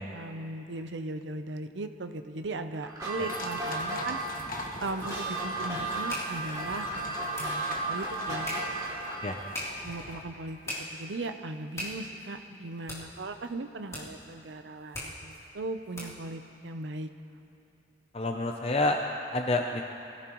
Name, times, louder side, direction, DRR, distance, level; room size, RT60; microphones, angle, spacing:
voice 1, 0.0-4.2 4.8-8.8 9.8-10.6 10.9-17.1, right 2 dB, 75° right, 8 dB, 0.7 m, -38 dB
sound 1, 2.8-9.4, right 2 dB, 20° right, 2.6 m, -34 dB
sound 2, 3.3-10.2, left 2 dB, 50° left, 1.4 m, -42 dB
sound 3, 5.8-16.3, left 1 dB, 15° left, 3.2 m, -43 dB
voice 2, 18.1-19.0 19.3-19.8, left 2 dB, 30° left, 3 dB, 0.6 m, -28 dB
23.5 x 16.0 x 3.1 m, 2.9 s
head